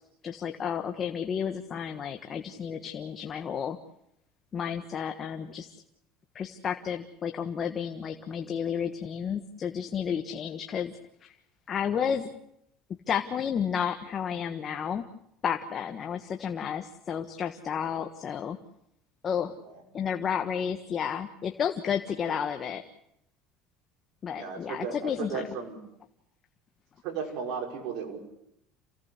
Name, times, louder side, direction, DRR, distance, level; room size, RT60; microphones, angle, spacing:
voice 1, 0.2-3.8 4.5-5.7 6.3-10.9 11.2-11.4 11.7-12.3 13.1-15.1 15.4-18.6 19.2-19.5 19.9-22.8 24.2-25.4, left 7 dB, 35° left, 6 dB, 1.4 m, -31 dB
voice 2, 24.3-25.8 27.0-28.2, right 6 dB, 65° right, 2 dB, 5.7 m, -35 dB
28.0 x 17.0 x 8.2 m, 0.78 s
supercardioid pair, 120°, 0 cm